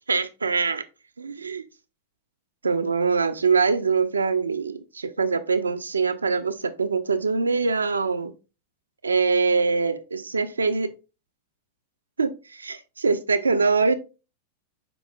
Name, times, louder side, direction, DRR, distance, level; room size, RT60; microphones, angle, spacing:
voice 1, 0.1-0.8 1.2-1.6 2.6-8.3 9.0-10.9 12.2-13.9, right 4 dB, 75° right, 0.6 m, -23 dB
7.7 x 5.4 x 2.4 m
figure-of-eight pair, 90°, 0 cm